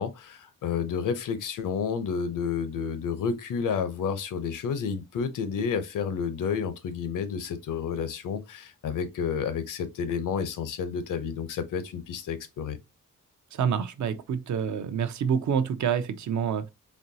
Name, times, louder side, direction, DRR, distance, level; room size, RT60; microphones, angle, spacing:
voice 1, 0.0-12.8, left 6 dB, 80° left, 0.7 m, -30 dB
voice 2, 13.5-16.7, right 7 dB, 65° right, 0.6 m, -27 dB
4.3 x 3.0 x 2.7 m
wide cardioid pair, 145°, 32 cm